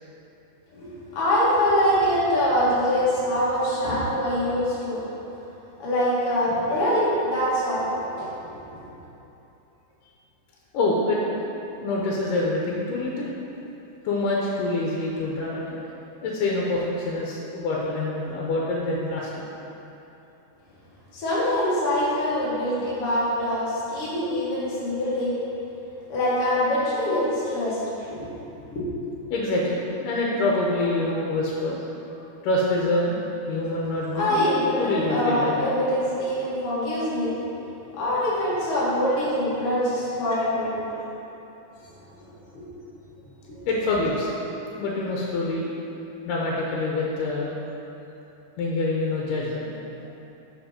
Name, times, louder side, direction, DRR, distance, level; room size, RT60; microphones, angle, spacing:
voice 1, 0.7-5.0 5.8-7.9 8.2-8.7 21.1-25.4 26.1-27.8 28.2-28.3 28.7-28.9 34.1-37.3 37.9-40.8 42.5-42.7 43.4-43.6, left 1 dB, 50° left, -9 dB, 2.2 m, -24 dB
voice 2, 10.7-11.3 11.8-13.3 14.0-15.8 16.2-19.4 29.3-31.8 32.4-33.2 33.5-34.5 34.8-35.7 43.7-44.3 44.8-45.7 46.3-47.5 48.6-49.7, left 2 dB, 90° left, -3 dB, 2.3 m, -26 dB
5.3 x 5.1 x 4.9 m, 3.0 s
omnidirectional pair, 3.7 m